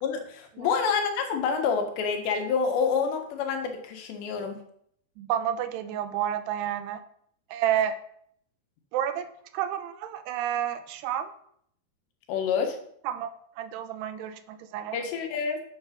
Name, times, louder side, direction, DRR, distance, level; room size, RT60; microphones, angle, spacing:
voice 1, 0.0-4.6 12.3-12.8 14.9-15.6, left 6 dB, 85° left, 5 dB, 3.7 m, -27 dB
voice 2, 5.2-7.0 7.5-8.0 8.9-11.3 13.0-13.3 13.6-15.0, right 10 dB, 85° right, 11 dB, 2.9 m, -30 dB
9.5 x 8.2 x 6.0 m, 0.67 s
omnidirectional pair, 4.8 m